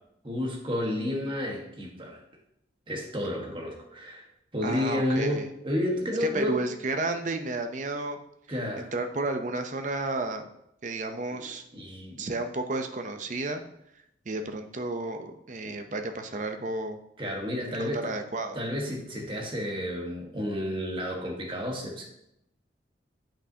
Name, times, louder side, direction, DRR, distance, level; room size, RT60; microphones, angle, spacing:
voice 1, 0.2-2.2 2.9-4.3 4.5-6.6 8.5-8.9 11.3-11.4 11.7-12.3 15.6-15.8 17.2-18.1 18.5-22.0, left 1 dB, 30° right, 0 dB, 1.4 m, -31 dB
voice 2, 4.6-5.5 6.2-8.2 8.8-10.5 10.8-11.6 12.2-13.6 14.3-17.0 17.7-18.6, right 2 dB, 45° right, 6 dB, 0.6 m, -32 dB
8.8 x 5.6 x 2.8 m, 0.79 s
head